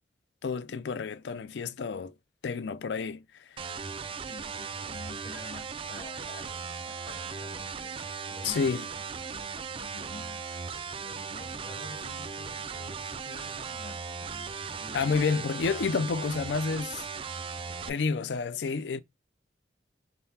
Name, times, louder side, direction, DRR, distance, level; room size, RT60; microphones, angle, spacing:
voice 1, 0.4-2.1 2.4-3.2 8.4-8.9 14.9-17.1 17.9-19.0, left 5 dB, 75° left, 0.4 m, -29 dB
sound 1, 3.6-17.9, right 5 dB, 30° right, 0.4 m, -38 dB
voice 2, 4.2-8.9 9.3-15.4, left 3 dB, 50° left, 1.5 m, -49 dB
3.8 x 3.7 x 2.7 m
head